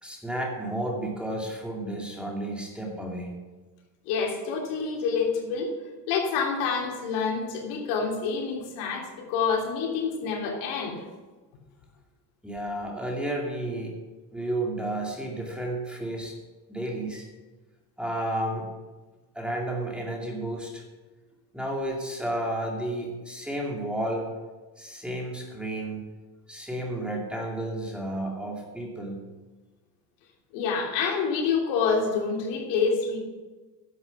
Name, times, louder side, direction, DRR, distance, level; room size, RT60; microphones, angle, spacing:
voice 1, 0.0-3.3 12.4-13.9 14.3-16.4 16.7-17.2 18.0-18.7 19.3-20.8 21.5-24.3 24.8-26.0 26.5-29.2, right 1 dB, 5° right, -1 dB, 2.5 m, -32 dB
voice 2, 4.0-5.7 6.1-11.0 30.5-33.2, left 5 dB, 90° left, 0 dB, 3.0 m, -27 dB
11.0 x 7.9 x 6.0 m, 1.2 s
cardioid pair, 125°, 41 cm